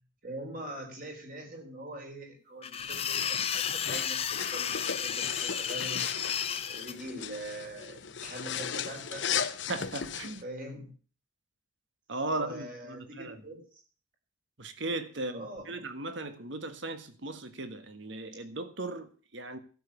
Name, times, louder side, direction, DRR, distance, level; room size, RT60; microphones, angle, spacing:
voice 1, 0.2-4.2 4.5-6.1 6.7-9.3 10.4-10.9 12.3-13.8 15.3-15.8, right 1 dB, 45° right, 4.2 m, -43 dB
sound 1, 2.6-6.9, left 8 dB, 30° left, 0.5 m, -33 dB
sound 2, 2.8-10.4, left 7 dB, 65° left, 0.9 m, -37 dB
voice 2, 9.4-10.4 12.1-13.4 14.6-19.6, right 2 dB, 65° right, 1.6 m, -37 dB
12.5 x 7.3 x 8.3 m
head